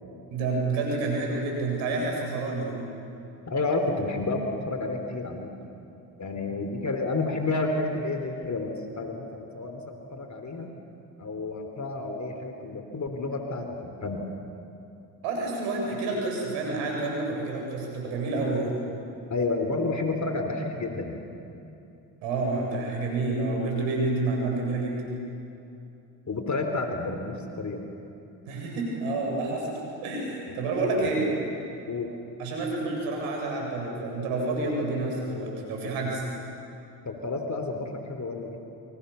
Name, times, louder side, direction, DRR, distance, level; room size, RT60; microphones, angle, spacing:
voice 1, 0.3-2.7 15.2-18.8 22.2-25.0 28.5-29.7 30.0-31.3 32.4-36.2, right 3 dB, 85° right, 0 dB, 7.6 m, -29 dB
voice 2, 3.5-5.5 6.2-10.7 11.2-14.3 19.3-21.2 26.3-27.8 30.5-30.6 31.0-31.1 31.9-32.1 37.1-38.6, left 3 dB, 35° left, 5 dB, 3.8 m, -30 dB
29.5 x 26.0 x 7.1 m, 2.8 s
hypercardioid pair, 60°, 46 cm